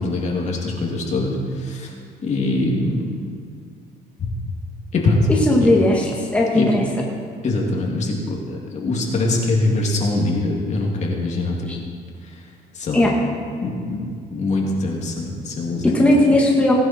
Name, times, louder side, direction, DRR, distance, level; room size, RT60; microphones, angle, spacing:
voice 1, 0.0-1.9 2.2-3.1 4.2-4.3 4.9-5.2 5.6-5.7 6.5-6.7 7.4-11.7 12.7-13.0 13.6-16.1, left 2 dB, 45° left, -2 dB, 2.9 m, -23 dB
voice 2, 5.5-6.8 11.7-11.8 12.9-13.1 15.8-16.7, left 1 dB, 5° left, -3 dB, 2.0 m, -17 dB
18.5 x 11.0 x 4.6 m, 2.2 s
cardioid pair, 110°, 17 cm